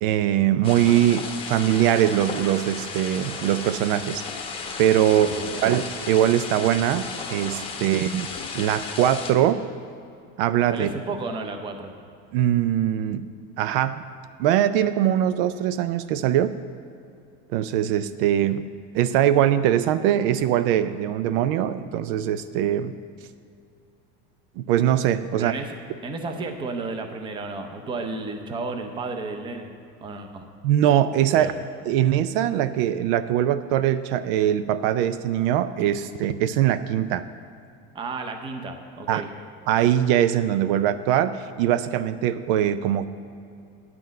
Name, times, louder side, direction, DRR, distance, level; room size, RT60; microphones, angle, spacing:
voice 1, 0.0-4.2 4.8-5.3 5.6-8.3 8.5-9.6 10.4-10.9 12.3-13.2 13.6-14.0 14.4-16.6 17.5-18.6 18.9-22.9 24.6-25.5 30.6-31.5 31.9-37.2 39.1-39.2 39.7-43.1, right 11 dB, 70° right, 13 dB, 0.5 m, -22 dB
sound 1, 0.6-9.3, left 4 dB, 20° left, 0.8 m, -34 dB
voice 2, 5.1-5.6 7.7-7.8 10.7-11.9 25.3-25.7 26.0-29.7 30.0-30.5 31.3-31.5 37.9-39.3, right 3 dB, 15° right, 5 dB, 0.6 m, -32 dB
9.2 x 6.0 x 7.5 m, 2.5 s
cardioid pair, 165°, 29 cm